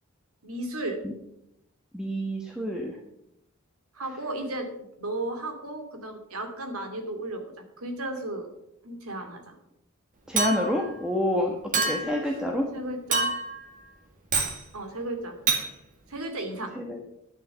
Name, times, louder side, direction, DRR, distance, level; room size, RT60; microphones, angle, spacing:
voice 1, 0.4-1.0 3.9-4.7 5.0-7.4 7.8-8.5 8.8-9.6 11.7-12.1 12.7-13.3 14.7-15.4 16.1-16.8, right 1 dB, 85° right, 5 dB, 2.4 m, -34 dB
voice 2, 1.9-3.0 10.3-11.5 11.9-12.6 16.8-17.0, left 1 dB, 5° right, 0 dB, 1.2 m, -28 dB
Chink clink, 10.4-10.9 11.7-12.2 13.1-13.6 14.3-14.6 15.5-15.7, right 4 dB, 40° right, 2.1 m, -26 dB
11.0 x 7.5 x 7.0 m, 0.81 s
head